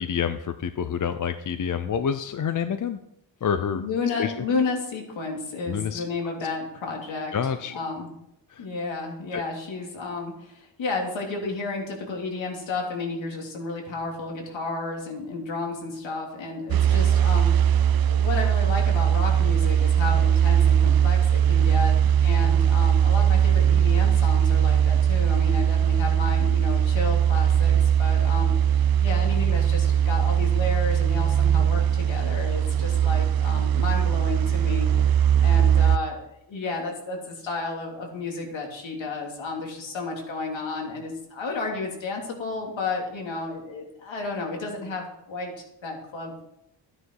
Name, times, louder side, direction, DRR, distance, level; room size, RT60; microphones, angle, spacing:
voice 1, 0.0-3.0 3.4-3.8 4.2-4.3 5.7-6.0 7.3-7.7 8.5-8.6 9.3-9.4, left 7 dB, 45° left, 10 dB, 0.6 m, -27 dB
voice 2, 3.7-7.3 7.7-8.1 8.6-35.1 35.4-46.4, left 3 dB, 80° left, 0 dB, 3.3 m, -32 dB
sound 1, 16.7-36.0, right 9 dB, 55° right, 0.5 m, -20 dB
15.0 x 9.7 x 4.7 m, 0.78 s
wide cardioid pair, 170°, 45 cm